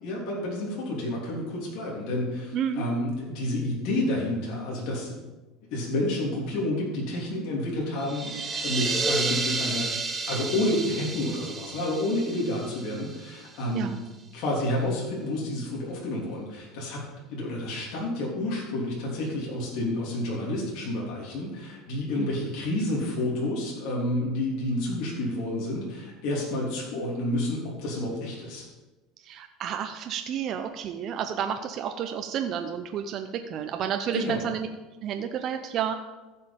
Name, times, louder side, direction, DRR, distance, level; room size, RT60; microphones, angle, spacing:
voice 1, 0.0-5.2 5.7-8.3 8.6-9.9 10.3-13.9 14.3-17.0 17.3-28.6 34.1-34.4, left 1 dB, 65° left, -4 dB, 3.1 m, -29 dB
voice 2, 2.5-2.9 13.7-14.0 22.2-22.5 29.2-34.7 35.0-35.9, right 8 dB, 45° right, 6 dB, 0.7 m, -31 dB
sound 1, 8.0-13.6, right 3 dB, 20° right, 1.4 m, -31 dB
15.0 x 5.6 x 5.3 m, 1.2 s
supercardioid pair, 130°, 0 cm